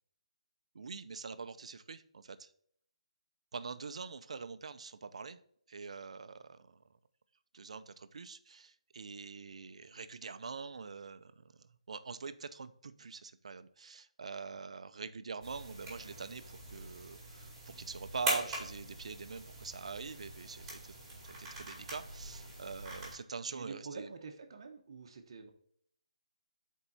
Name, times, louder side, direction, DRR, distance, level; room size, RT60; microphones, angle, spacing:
voice 1, 0.7-2.5 3.5-5.4 5.7-6.8 7.5-20.9 21.2-24.1, right 5 dB, 60° right, 13 dB, 0.6 m, -44 dB
sound 1, 15.4-23.1, right 2 dB, 5° right, 2.5 m, -42 dB
voice 2, 23.5-25.5, right 4 dB, 45° right, 5 dB, 0.9 m, -47 dB
7.1 x 4.6 x 4.1 m, 0.65 s
hypercardioid pair, 170°, 4 cm